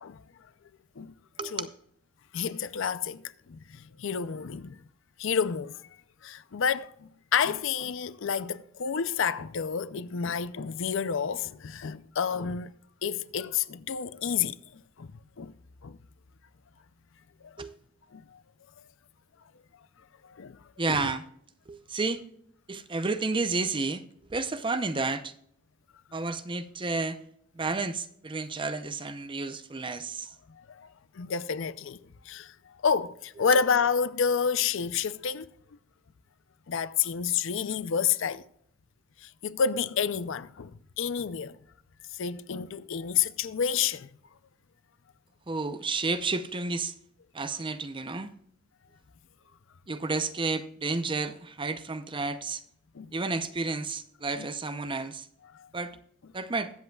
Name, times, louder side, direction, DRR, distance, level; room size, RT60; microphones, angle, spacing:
voice 1, 1.4-1.8 17.6-17.7 20.8-21.2 21.7-22.2 22.7-24.0 24.3-25.3 26.1-27.2 27.5-30.3 45.5-46.9 47.3-48.3 49.9-52.6 53.1-55.3 55.7-56.0 56.3-56.7, right 3 dB, 25° right, 0.6 m, -31 dB
voice 2, 2.3-4.8 5.2-5.8 6.2-12.7 13.0-15.5 15.8-16.0 17.4-17.5 18.1-18.4 20.2-20.6 20.9-21.1 30.6-30.9 31.1-32.0 32.3-32.5 32.8-35.5 36.7-38.4 39.2-41.6 42.1-44.1 52.9-53.1 54.4-54.5 55.5-55.7, left 6 dB, 65° left, 0.5 m, -29 dB
21.5 x 7.8 x 2.3 m
head